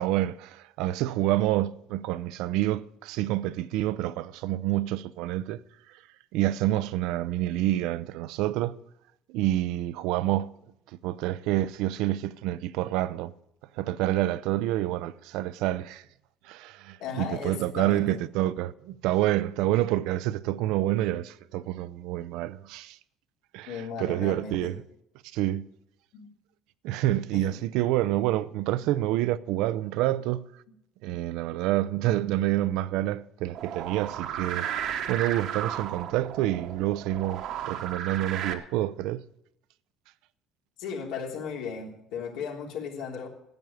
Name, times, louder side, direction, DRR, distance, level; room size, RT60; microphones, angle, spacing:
voice 1, 0.0-5.6 6.3-8.8 9.3-10.5 11.0-13.3 13.8-16.0 16.4-23.0 23.5-24.8 25.3-25.6 26.8-30.4 31.0-39.2, right 14 dB, 75° right, 0.5 m, -28 dB
voice 2, 17.0-18.2 23.7-24.7 26.1-26.3 27.3-27.6 40.8-43.3, left 6 dB, 75° left, 3.2 m, -36 dB
sound 1, 33.5-38.5, right 9 dB, 60° right, 1.1 m, -34 dB
10.5 x 9.1 x 9.6 m
cardioid pair, 150°, 0 cm